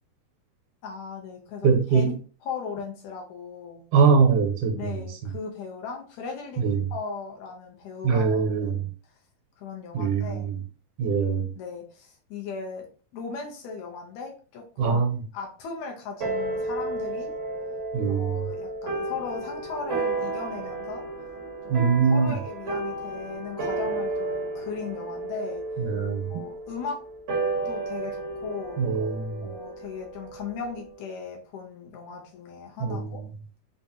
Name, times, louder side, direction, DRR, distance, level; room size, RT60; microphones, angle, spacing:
voice 1, 0.8-2.1 2.4-3.8 4.8-8.9 9.6-10.5 11.6-12.9 13.1-15.0 15.3-17.3 18.1-21.0 21.6-25.6 26.3-27.0 27.7-28.8 29.4-33.2, left 5 dB, 75° left, 1 dB, 1.9 m, -37 dB
voice 2, 1.6-2.1 3.9-4.9 6.6-6.9 8.0-8.9 9.9-10.6 11.0-11.4 14.8-15.2 17.9-18.4 21.7-22.3 25.8-26.3 28.8-29.5 32.8-33.1, right 5 dB, 75° right, 2 dB, 2.1 m, -22 dB
sound 1, 16.2-30.9, right 2 dB, 60° right, 0.9 m, -32 dB
5.3 x 2.4 x 2.7 m, 0.38 s
omnidirectional pair, 3.6 m